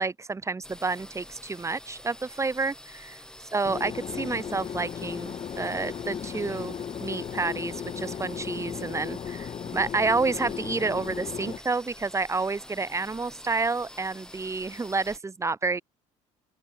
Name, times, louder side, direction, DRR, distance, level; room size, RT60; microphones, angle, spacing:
voice 1, 0.0-3.2 3.5-15.8, right 4 dB, 20° right, 1.4 m, -29 dB
sound 1, 0.6-15.2, left 1 dB, 5° left, 3.7 m, -47 dB
sound 2, 3.6-11.6, left 8 dB, 35° left, 0.9 m, -36 dB
open air
supercardioid pair, 90°, 16 cm